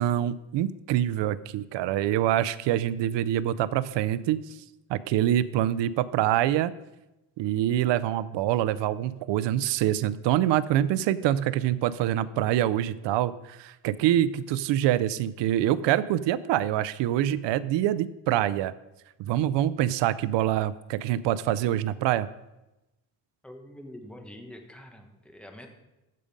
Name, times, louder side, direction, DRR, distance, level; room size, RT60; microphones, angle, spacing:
voice 1, 0.0-4.4 4.9-6.7 7.4-18.7 19.2-22.3, right 12 dB, 80° right, 16 dB, 0.5 m, -25 dB
voice 2, 23.4-25.7, left 1 dB, ahead, 3 dB, 1.1 m, -45 dB
14.5 x 5.1 x 5.3 m, 0.97 s
cardioid pair, 150°, 43 cm